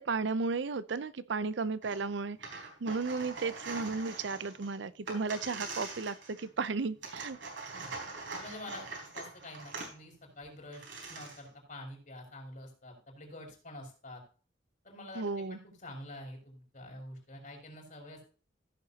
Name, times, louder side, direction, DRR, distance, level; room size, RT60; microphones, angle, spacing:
voice 1, 0.0-7.4 15.2-15.6, right 4 dB, 70° right, 0.6 m, -34 dB
sound 1, 1.8-2.0 2.3-6.6 7.0-9.9 10.4-10.5 10.7-11.5, right 3 dB, 85° right, 4.0 m, -43 dB
voice 2, 8.4-8.9 9.1-14.2 14.8-18.2, left 1 dB, 45° left, 4.7 m, -47 dB
16.0 x 7.0 x 2.8 m
head